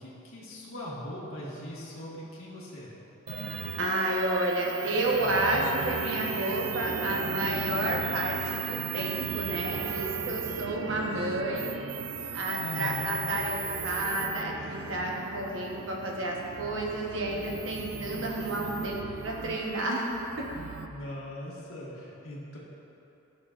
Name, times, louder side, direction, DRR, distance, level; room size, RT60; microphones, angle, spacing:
voice 1, 0.0-3.0 12.6-13.2 20.9-22.6, equal, 80° left, -6 dB, 1.6 m, -40 dB
sound 1, 3.3-20.9, right 6 dB, 90° right, 0.4 m, -36 dB
voice 2, 3.8-11.7 12.3-13.6 13.8-19.0 19.2-20.1 20.4-20.5, right 1 dB, 65° right, -1 dB, 1.1 m, -30 dB
12.0 x 6.6 x 2.5 m, 2.9 s
head